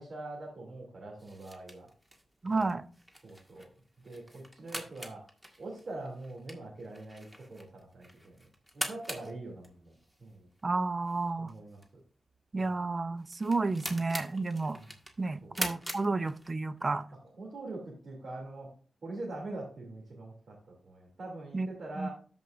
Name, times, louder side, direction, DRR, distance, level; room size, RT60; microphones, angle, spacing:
voice 1, 0.0-1.9 2.5-2.7 3.2-3.7 4.0-5.2 5.6-8.5 8.7-9.9 10.2-10.5 11.4-11.8 12.6-12.7 14.7-14.9 15.4-15.6 17.4-18.7 19.0-22.1, right 2 dB, 65° right, -4 dB, 2.8 m, -43 dB
sound 1, 1.2-16.8, equal, 10° right, 1.8 m, -44 dB
voice 2, 2.4-2.8 10.6-11.5 12.5-14.8 15.2-17.1 21.5-21.7 22.0-22.1, right 3 dB, 40° right, 14 dB, 0.6 m, -31 dB
13.0 x 5.3 x 2.6 m, 0.41 s
cardioid pair, 55°, 0 cm